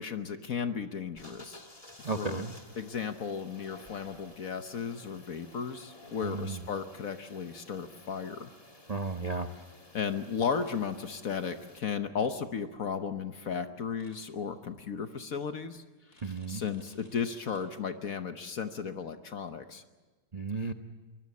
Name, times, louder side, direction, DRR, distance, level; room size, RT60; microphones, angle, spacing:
voice 1, 0.0-1.7 2.2-2.5 2.8-8.5 9.9-15.8 16.1-19.8, left 6 dB, 50° left, 9 dB, 1.2 m, -35 dB
sound 1, 1.2-11.8, left 2 dB, 15° left, 2.0 m, -53 dB
voice 2, 2.0-2.5 6.2-6.6 8.9-9.5 16.2-16.6 20.3-20.7, right 4 dB, 45° right, 5 dB, 0.5 m, -34 dB
sound 2, 10.6-10.7 14.0-14.2 16.1-17.6, left 1 dB, 35° left, 5.5 m, -60 dB
23.5 x 20.5 x 8.4 m, 1.3 s
omnidirectional pair, 2.2 m